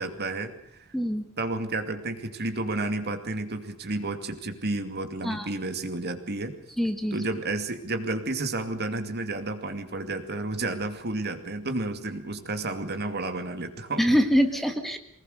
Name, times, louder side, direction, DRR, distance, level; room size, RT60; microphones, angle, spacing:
voice 1, 0.0-0.8 1.4-6.6 7.1-14.0, right 2 dB, 50° right, 7 dB, 2.4 m, -31 dB
voice 2, 0.9-1.2 5.2-5.5 6.8-7.2 14.0-15.0, equal, ahead, 6 dB, 1.5 m, -24 dB
23.5 x 19.5 x 6.7 m, 0.70 s
head